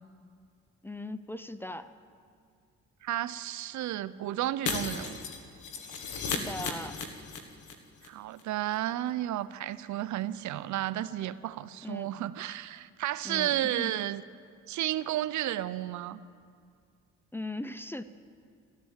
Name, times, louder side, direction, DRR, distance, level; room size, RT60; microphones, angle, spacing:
voice 1, 0.8-1.9 6.2-7.0 11.8-12.2 13.2-13.9 17.3-18.0, left 2 dB, 5° left, 12 dB, 0.5 m, -39 dB
voice 2, 3.0-5.2 8.0-14.2 14.7-16.2, right 13 dB, 70° right, 15 dB, 0.6 m, -32 dB
Shatter, 4.7-7.7 8.0-8.1 8.4-8.5, left 4 dB, 80° left, 1.6 m, -35 dB
14.0 x 13.0 x 7.3 m, 2.2 s
cardioid pair, 90°, 30 cm